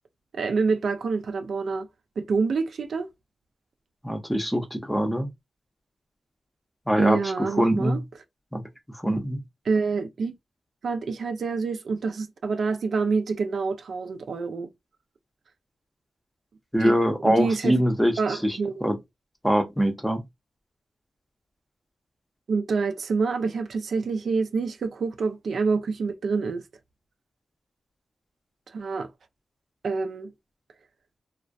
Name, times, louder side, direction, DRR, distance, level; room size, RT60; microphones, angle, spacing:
voice 1, 0.3-1.9 2.2-3.1 7.0-8.0 9.7-10.3 10.8-14.7 16.8-16.9 17.2-17.7 18.2-18.8 22.5-26.6 28.7-29.1 29.8-30.3, right 4 dB, 70° right, 0.4 m, -27 dB
voice 2, 4.0-5.3 6.9-8.0 8.5-8.6 8.9-9.4 16.7-19.0 19.4-20.2, equal, 5° left, 0.6 m, -24 dB
2.3 x 2.1 x 2.5 m
wide cardioid pair, 110°, 0 cm